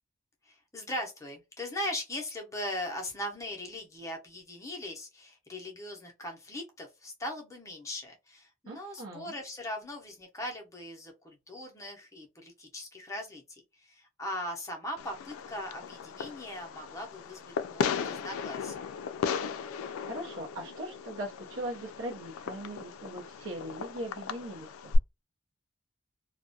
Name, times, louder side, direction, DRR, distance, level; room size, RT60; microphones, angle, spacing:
voice 1, 0.5-18.8, left 1 dB, 15° left, 0.5 m, -39 dB
voice 2, 8.7-9.3 20.1-24.9, right 1 dB, 70° right, 0.6 m, -40 dB
Fireworks, 15.0-25.0, left 5 dB, 80° left, 0.3 m, -36 dB
2.3 x 2.1 x 2.6 m
head